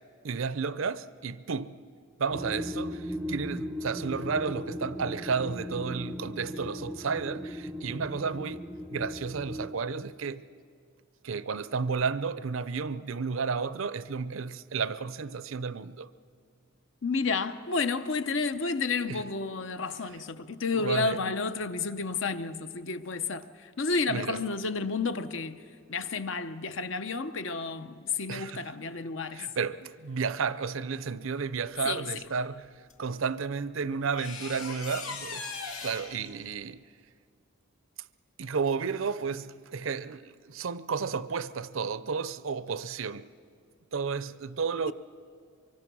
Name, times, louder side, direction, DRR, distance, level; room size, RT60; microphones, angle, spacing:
voice 1, 0.2-1.8 2.2-8.6 8.9-10.4 11.2-16.1 19.1-19.2 20.7-21.2 24.1-24.4 28.3-28.7 29.3-32.7 33.0-36.8 38.4-43.3 43.9-44.9, right 5 dB, 70° right, 0.6 m, -32 dB
sound 1, 2.3-9.7, equal, 5° right, 0.6 m, -37 dB
voice 2, 17.0-25.6 25.9-29.4 31.8-32.0, left 4 dB, 65° left, 0.8 m, -31 dB
sound 2, 32.9-33.0 34.1-36.3, left 4 dB, 85° left, 2.4 m, -39 dB
24.5 x 24.0 x 6.2 m
head